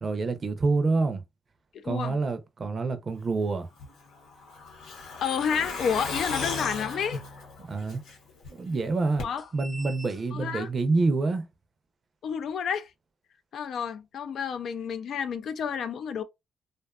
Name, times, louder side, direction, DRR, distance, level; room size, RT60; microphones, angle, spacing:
voice 1, 0.0-1.2 1.8-3.7 7.6-8.0 8.5-9.2 9.5-11.5, right 3 dB, 40° right, 0.5 m, -27 dB
voice 2, 1.7-2.2 5.2-7.2 9.2-9.5 10.3-10.7 12.2-12.9 13.5-16.2, left 7 dB, 65° left, 0.3 m, -30 dB
Truck, 3.8-8.5 8.8-8.9 9.2-9.3, left 4 dB, 85° left, 0.9 m, -36 dB
sound 1, 4.7-6.7 7.5-7.6 7.8-7.9 8.6-10.7, equal, 15° left, 0.8 m, -47 dB
2.5 x 2.3 x 2.3 m
cardioid pair, 90°, 0 cm